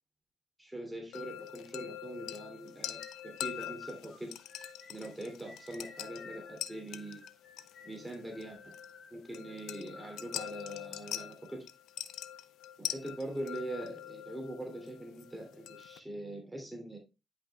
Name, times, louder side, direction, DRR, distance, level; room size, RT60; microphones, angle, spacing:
voice 1, 0.6-7.2 7.9-8.6 9.1-11.7 12.8-17.0, right 1 dB, 10° right, 2 dB, 2.9 m, -43 dB
sound 1, 1.1-16.0, left 11 dB, 90° left, 0.5 m, -44 dB
sound 2, 2.8-10.8, left 3 dB, 40° left, 2.9 m, -54 dB
10.0 x 5.6 x 2.3 m, 0.27 s
cardioid pair, 70°, 0 cm